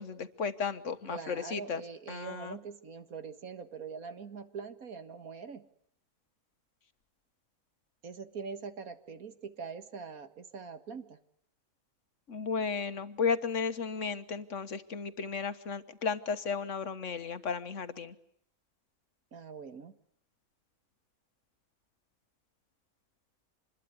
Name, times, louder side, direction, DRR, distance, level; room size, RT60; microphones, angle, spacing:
voice 1, 0.0-1.8 2.1-2.6 12.3-18.1, left 5 dB, 60° left, 11 dB, 1.7 m, -34 dB
voice 2, 1.1-5.6 8.0-11.2 19.3-19.9, right 5 dB, 90° right, 10 dB, 2.2 m, -43 dB
26.5 x 21.5 x 9.5 m, 0.69 s
omnidirectional pair, 1.5 m